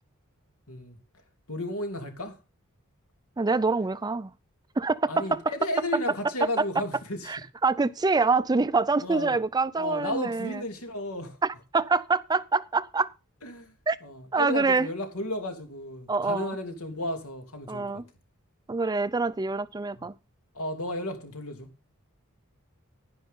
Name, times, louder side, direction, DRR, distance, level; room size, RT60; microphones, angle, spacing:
voice 1, 1.5-2.4 5.1-7.3 9.0-9.3 9.8-11.4 13.4-13.7 14.0-17.8 20.0-20.1 20.5-21.7, left 1 dB, 85° left, 3.2 m, -33 dB
voice 2, 3.4-4.3 4.8-5.4 6.4-6.6 7.3-10.6 11.4-13.1 13.9-14.0 14.3-14.9 16.1-16.5 17.7-18.0 18.7-20.1, right 3 dB, 20° right, 0.4 m, -25 dB
10.5 x 10.5 x 3.8 m
head